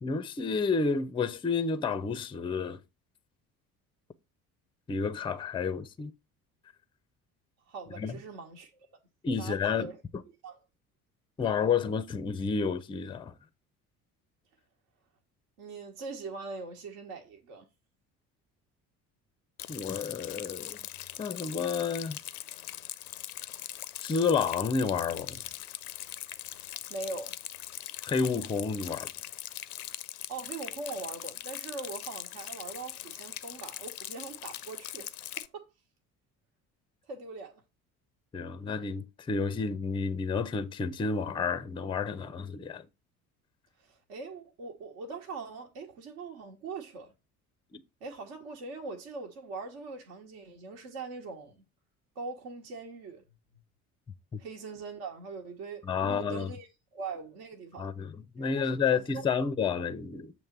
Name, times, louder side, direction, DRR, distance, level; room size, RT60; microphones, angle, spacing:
voice 1, 0.0-2.8 4.9-6.1 8.0-8.2 9.2-9.9 11.4-13.3 19.7-20.8 21.2-22.2 24.0-25.4 28.0-29.1 38.3-42.9 47.7-47.8 55.8-56.5 57.8-60.3, left 5 dB, 10° left, 0.5 m, -30 dB
voice 2, 7.7-8.9 9.4-10.0 10.4-10.6 15.6-17.7 26.4-27.4 30.3-35.1 35.4-35.7 37.1-37.6 43.8-47.1 48.0-51.6 52.1-53.2 54.4-57.9 58.4-59.4, right 4 dB, 55° right, 1.2 m, -42 dB
Rain, 19.6-35.5, left 14 dB, 75° left, 0.5 m, -41 dB
7.7 x 3.0 x 5.8 m
figure-of-eight pair, 55°, 45 cm